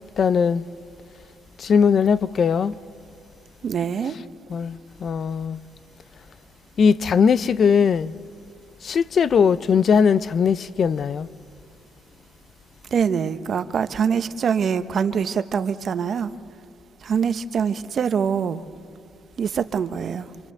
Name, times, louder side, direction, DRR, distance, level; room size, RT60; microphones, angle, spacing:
voice 1, 0.2-0.7 1.6-2.8 4.5-5.6 6.8-8.1 8.8-11.3, left 6 dB, 55° left, 0.6 m, -19 dB
voice 2, 3.6-4.1 12.9-16.3 17.0-18.6 19.4-20.3, right 7 dB, 55° right, 1.1 m, -24 dB
26.5 x 25.0 x 8.1 m
cardioid pair, 90°, 0 cm